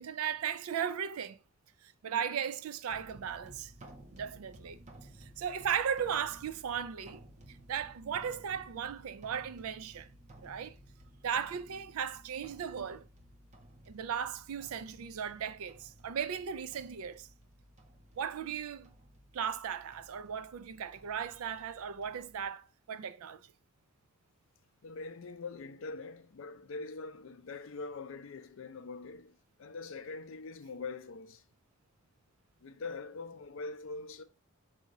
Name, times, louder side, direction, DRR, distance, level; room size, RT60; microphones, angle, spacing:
voice 1, 0.0-1.4 1.8-3.7 4.1-4.8 5.2-7.2 7.5-10.1 10.4-10.8 11.2-13.1 13.9-17.3 18.2-18.9 19.3-23.5, right 8 dB, 80° right, 0.4 m, -36 dB
sound 1, 2.9-22.5, right 1 dB, 30° right, 0.7 m, -56 dB
voice 2, 24.8-31.4 32.6-34.2, left 3 dB, 65° left, 0.5 m, -43 dB
4.0 x 2.7 x 4.8 m
head